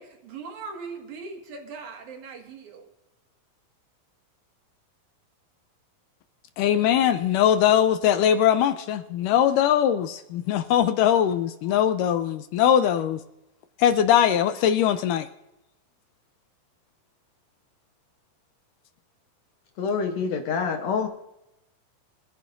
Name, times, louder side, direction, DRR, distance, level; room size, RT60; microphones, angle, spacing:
voice 1, 0.0-2.9, right 4 dB, 60° right, 3.0 m, -40 dB
voice 2, 6.6-13.2 13.8-15.3, left 10 dB, 80° left, 2.0 m, -21 dB
voice 3, 19.8-21.1, left 5 dB, 65° left, 1.8 m, -26 dB
24.5 x 10.5 x 2.6 m
omnidirectional pair, 4.2 m